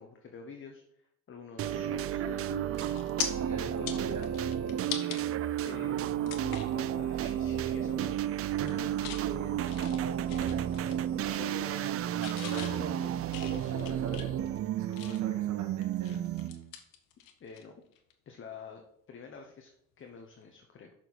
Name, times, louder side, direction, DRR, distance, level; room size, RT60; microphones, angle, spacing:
voice 1, 0.0-2.8 3.1-4.0 5.6-8.6 11.1-12.0 12.2-14.3 17.4-17.9 18.3-18.8 19.1-19.7 20.0-20.9, left 5 dB, 40° left, 3 dB, 1.0 m, -48 dB
sound 1, 1.6-16.7, right 10 dB, 45° right, 0.4 m, -32 dB
sound 2, 2.2-2.4 2.7-3.3 3.7-5.2 5.7-5.8 6.3-6.8 7.2-7.4 7.7-8.1 8.5-9.2 9.6-11.0 11.2-11.9 12.2-15.4 15.8-17.6 17.9-18.1 20.0-20.2, left 9 dB, 90° left, 1.1 m, -41 dB
voice 2, 3.5-4.5 8.6-10.6 12.4-12.7 13.6-14.3 14.8-16.2, right 4 dB, 65° right, 3 dB, 1.5 m, -42 dB
6.7 x 4.5 x 6.2 m, 0.76 s
cardioid pair, 95°, 32 cm